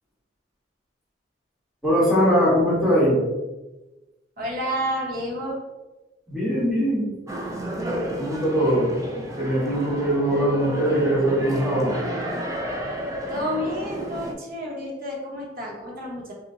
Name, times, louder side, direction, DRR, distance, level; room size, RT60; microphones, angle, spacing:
voice 1, 1.8-3.2 6.3-7.1 8.2-11.9, equal, ahead, -8 dB, 1.5 m, -21 dB
voice 2, 4.4-5.6 13.3-16.3, equal, 55° right, -2 dB, 1.2 m, -30 dB
sound 1, 7.3-14.3, equal, 20° right, 0.5 m, -31 dB
5.6 x 2.5 x 2.7 m, 1.1 s
head